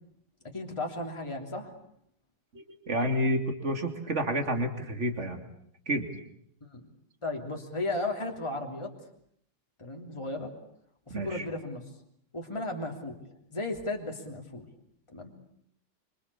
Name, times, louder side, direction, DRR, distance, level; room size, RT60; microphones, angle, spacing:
voice 1, 0.5-1.7 6.6-6.9 7.2-8.9 9.8-10.5 11.1-11.9 12.3-13.2 13.5-14.7 15.1-15.3, left 2 dB, 15° left, 2 dB, 3.2 m, -35 dB
voice 2, 2.5-5.4 5.9-6.1 11.1-11.4, right 1 dB, 35° right, 6 dB, 3.2 m, -29 dB
26.0 x 25.5 x 8.5 m, 0.69 s
omnidirectional pair, 2.1 m